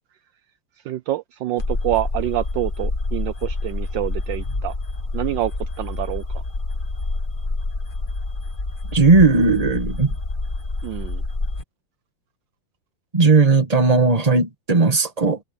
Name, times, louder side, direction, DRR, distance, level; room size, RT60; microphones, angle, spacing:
voice 1, 0.8-4.7 5.1-6.4 10.8-11.2, right 14 dB, 70° right, 1.3 m, -27 dB
sound 1, 1.6-11.6, left 2 dB, 25° left, 1.8 m, -27 dB
voice 2, 8.9-10.1 13.1-15.4, right 3 dB, 20° right, 1.8 m, -16 dB
omnidirectional pair, 2.2 m